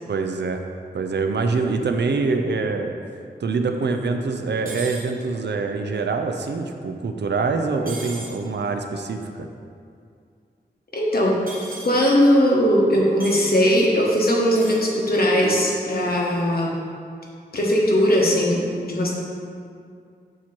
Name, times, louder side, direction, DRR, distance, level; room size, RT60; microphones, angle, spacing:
voice 1, 0.1-0.6 0.9-2.9 3.4-9.5, right 4 dB, 85° right, 5 dB, 0.5 m, -25 dB
sound 1, 4.7-5.0 7.9-8.3 11.5-11.9 13.2-13.5 14.5-14.8, right 2 dB, 55° right, 1.5 m, -36 dB
voice 2, 10.9-11.3 11.8-16.7 17.5-19.1, equal, 60° left, -3 dB, 1.2 m, -19 dB
7.3 x 2.9 x 5.9 m, 2.3 s
wide cardioid pair, 80°, 17 cm